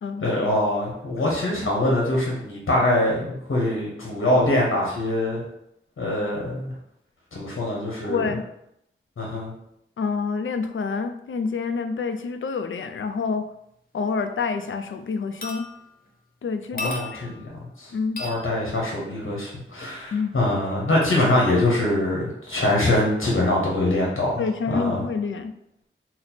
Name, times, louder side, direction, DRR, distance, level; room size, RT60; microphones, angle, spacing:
voice 1, 0.2-5.4 6.0-6.7 7.3-8.2 9.2-9.5 16.7-17.3 17.8-17.9 18.2-24.4 24.7-25.0, left 1 dB, 90° left, -3 dB, 1.0 m, -23 dB
voice 2, 8.0-8.4 10.0-13.5 13.9-15.6 16.4-17.3 17.9-18.2 20.1-20.3 24.4-25.5, left 5 dB, 70° left, 8 dB, 0.4 m, -27 dB
sound 1, 14.2-14.3 14.7-14.9 15.4-16.1 16.8-17.5 18.2-18.5 19.8-20.0 21.0-21.1, left 2 dB, 45° left, 0.8 m, -35 dB
4.1 x 2.0 x 4.3 m, 0.76 s
wide cardioid pair, 70°, 21 cm